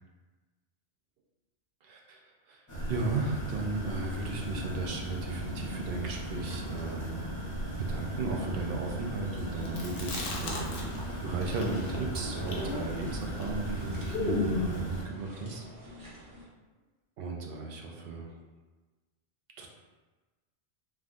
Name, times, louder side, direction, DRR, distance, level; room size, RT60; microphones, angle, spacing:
voice 1, 1.9-7.3 7.6-16.1 17.2-18.4 19.6-19.7, right 3 dB, 65° right, 1 dB, 0.7 m, -36 dB
sound 1, 2.7-15.0, right 1 dB, 20° left, 0.6 m, -37 dB
Chewing mastication, 9.6-11.1 11.4-14.8, left 3 dB, 60° left, 0.7 m, -34 dB
sound 2, 10.1-16.5, equal, 25° right, 0.5 m, -44 dB
3.4 x 2.3 x 2.5 m, 1.3 s
omnidirectional pair, 1.2 m